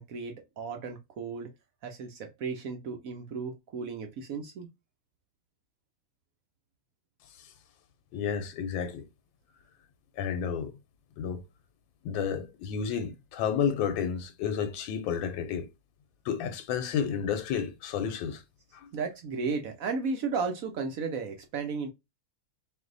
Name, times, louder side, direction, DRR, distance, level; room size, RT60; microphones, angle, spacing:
voice 1, 0.0-1.5 1.8-4.7 18.9-21.9, right 5 dB, 70° right, 0.8 m, -34 dB
voice 2, 8.1-9.0 10.2-10.7 11.2-11.4 12.0-15.7 16.2-18.4 18.7-18.9, left 7 dB, 85° left, 1.3 m, -31 dB
4.0 x 2.6 x 3.8 m
omnidirectional pair, 2.1 m